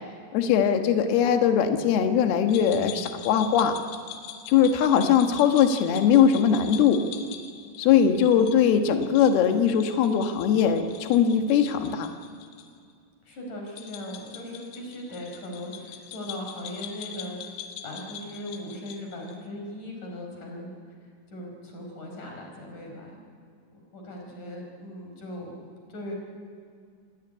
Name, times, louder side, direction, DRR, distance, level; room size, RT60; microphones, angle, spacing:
voice 1, 0.3-3.8 4.5-7.0 7.8-12.1, left 8 dB, 65° left, 6 dB, 2.8 m, -21 dB
sound 1, 2.5-12.7 12.9-13.0 13.7-19.4, left 9 dB, 80° left, 4.3 m, -43 dB
voice 2, 13.2-17.6 17.8-20.7 21.3-23.2 23.9-25.6 25.9-26.1, left 1 dB, 40° left, 1 dB, 5.9 m, -38 dB
27.5 x 17.0 x 9.9 m, 2.2 s
omnidirectional pair, 5.8 m